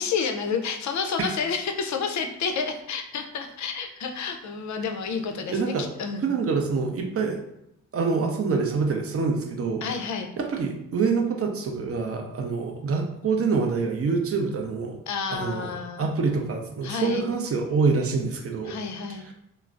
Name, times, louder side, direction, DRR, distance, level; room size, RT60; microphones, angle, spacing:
voice 1, 0.0-6.3 9.8-10.3 15.1-16.1 16.8-17.3 18.7-19.3, left 5 dB, 45° left, 6 dB, 0.5 m, -30 dB
voice 2, 5.5-5.9 6.2-7.4 7.9-9.8 10.4-15.0 15.3-15.7 16.0-18.8 19.2-19.3, right 4 dB, 35° right, 3 dB, 0.6 m, -26 dB
3.1 x 2.0 x 2.4 m, 0.80 s
hypercardioid pair, 45°, 42 cm